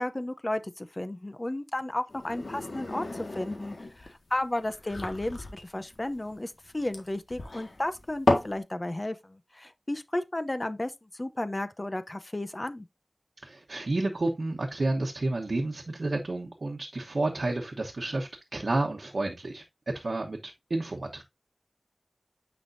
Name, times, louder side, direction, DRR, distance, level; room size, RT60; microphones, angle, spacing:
voice 1, 0.0-12.9, left 1 dB, 35° left, 0.7 m, -33 dB
sound 1, 2.1-8.6, left 2 dB, 85° left, 1.7 m, -33 dB
voice 2, 13.4-19.6 19.9-21.2, right 2 dB, 80° right, 1.1 m, -30 dB
9.3 x 5.2 x 2.7 m
wide cardioid pair, 50°, 0 cm